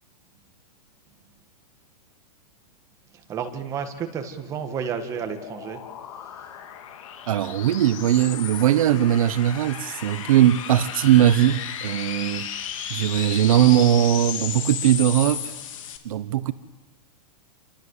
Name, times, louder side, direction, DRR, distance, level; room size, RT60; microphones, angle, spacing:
voice 1, 3.1-5.8 6.4-6.5, right 7 dB, 15° right, 1.6 m, -31 dB
sound 1, 4.2-16.0, left 9 dB, 50° left, 3.2 m, -34 dB
voice 2, 7.3-12.5 12.9-15.5 16.0-16.5, right 12 dB, 55° right, 1.0 m, -20 dB
28.5 x 25.0 x 8.3 m
supercardioid pair, 175°, 21 cm